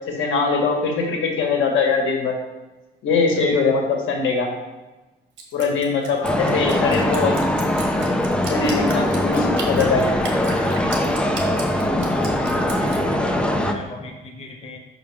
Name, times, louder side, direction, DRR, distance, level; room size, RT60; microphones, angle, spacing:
voice 1, 0.1-2.3 3.0-4.5 5.5-7.3 8.5-10.0, left 4 dB, 85° left, 1 dB, 1.5 m, -21 dB
Drip, 5.4-13.0, right 4 dB, 85° right, 1.4 m, -35 dB
voice 2, 6.1-6.4 6.7-7.4 12.1-14.8, left 3 dB, 30° left, 1 dB, 0.8 m, -36 dB
sound 1, 6.2-13.7, left 1 dB, 5° left, 0.4 m, -21 dB
5.8 x 5.2 x 4.8 m, 1.1 s
cardioid pair, 155°, 19 cm